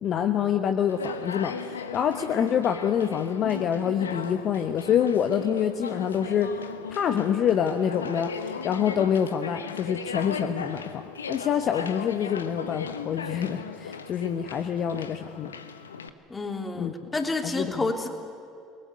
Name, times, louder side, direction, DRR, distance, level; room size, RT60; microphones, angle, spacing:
voice 1, 0.0-15.5 16.8-17.1 17.4-18.1, left 8 dB, 45° left, 8 dB, 1.2 m, -26 dB
Conversation, 0.9-16.1, left 6 dB, 85° left, 1.1 m, -37 dB
voice 2, 16.3-18.1, left 3 dB, 20° left, 5 dB, 3.3 m, -29 dB
28.0 x 21.0 x 9.7 m, 2.5 s
figure-of-eight pair, 65°, 0 cm